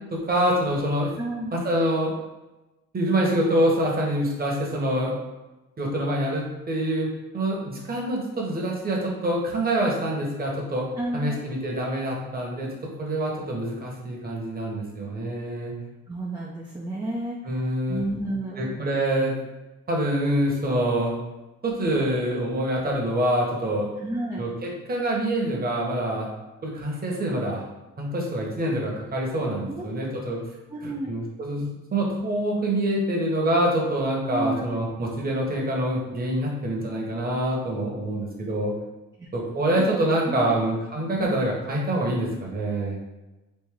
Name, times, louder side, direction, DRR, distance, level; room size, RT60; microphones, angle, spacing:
voice 1, 0.1-1.1 1.5-2.1 2.9-5.1 5.8-7.1 7.3-10.9 11.1-12.7 13.0-15.7 17.5-18.0 18.6-19.3 19.9-21.1 21.6-23.9 24.4-26.3 26.6-27.6 28.0-30.4 30.8-38.7 39.3-43.0, right 1 dB, 30° right, -2 dB, 1.0 m, -26 dB
voice 2, 1.2-1.6 11.0-11.4 16.1-18.7 24.0-24.5 29.7-30.1 30.7-31.1 34.3-34.7 39.2-39.3 39.7-39.9 40.3-40.6 41.2-41.3, right 1 dB, 15° right, -4 dB, 0.5 m, -31 dB
3.2 x 2.6 x 3.6 m, 1.1 s
cardioid pair, 90°, 30 cm